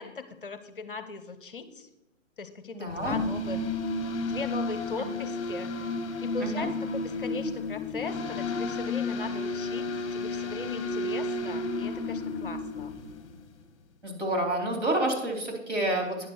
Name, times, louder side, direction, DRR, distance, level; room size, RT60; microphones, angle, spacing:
voice 1, 0.0-1.9 2.4-3.6 4.2-5.8 6.2-12.9, left 4 dB, 40° left, 11 dB, 0.6 m, -39 dB
voice 2, 2.7-3.2 6.4-6.7 14.0-16.3, right 1 dB, 60° right, 0 dB, 3.6 m, -29 dB
sound 1, 2.9-13.3, left 2 dB, 25° left, 0.9 m, -32 dB
9.9 x 6.8 x 4.5 m, 1.0 s
figure-of-eight pair, 130°, 40 cm